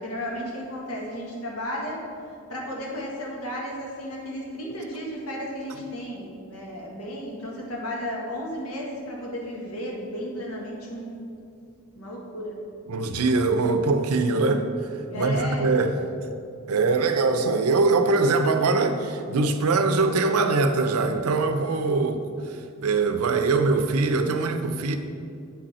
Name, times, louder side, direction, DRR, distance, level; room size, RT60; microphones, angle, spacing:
voice 1, 0.0-2.0 2.5-11.2 11.9-12.6 15.1-15.9, equal, 85° left, -2 dB, 1.6 m, -33 dB
voice 2, 12.9-14.7 15.1-15.9 16.7-22.2 22.8-25.0, right 3 dB, 85° right, 8 dB, 0.5 m, -22 dB
8.0 x 5.4 x 4.2 m, 2.5 s
head